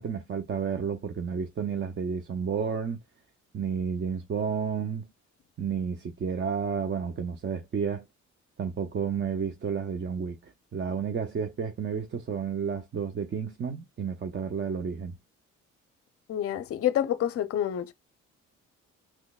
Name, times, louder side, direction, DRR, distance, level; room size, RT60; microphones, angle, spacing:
voice 1, 0.0-3.0 3.5-5.1 5.6-8.0 8.6-15.1, right 6 dB, 40° right, 0.6 m, -31 dB
voice 2, 16.3-17.9, left 11 dB, 50° left, 0.5 m, -28 dB
3.8 x 3.0 x 2.3 m
cardioid pair, 90°, 30 cm